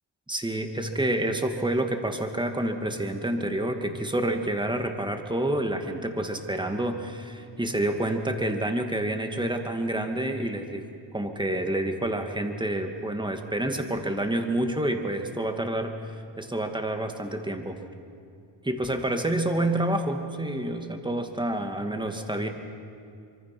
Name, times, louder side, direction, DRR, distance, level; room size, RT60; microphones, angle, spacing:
voice 1, 0.3-10.8 11.1-17.8 18.6-22.5, right 1 dB, 10° right, 5 dB, 2.1 m, -28 dB
25.0 x 24.0 x 6.1 m, 2.4 s
cardioid pair, 95°, 45 cm